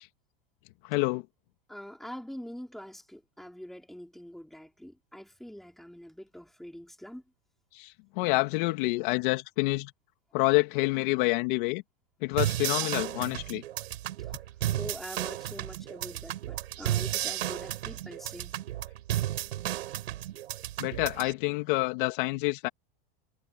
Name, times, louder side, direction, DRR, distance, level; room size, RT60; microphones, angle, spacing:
voice 1, 0.8-1.2 7.7-9.9 10.3-11.8 12.2-13.6 20.8-22.7, left 23 dB, 55° left, 2.5 m, -28 dB
voice 2, 1.7-7.2 12.8-12.9 14.8-18.6, equal, ahead, 4.4 m, -44 dB
sound 1, 12.4-21.3, right 13 dB, 85° right, 6.1 m, -33 dB
supercardioid pair, 145°, 31 cm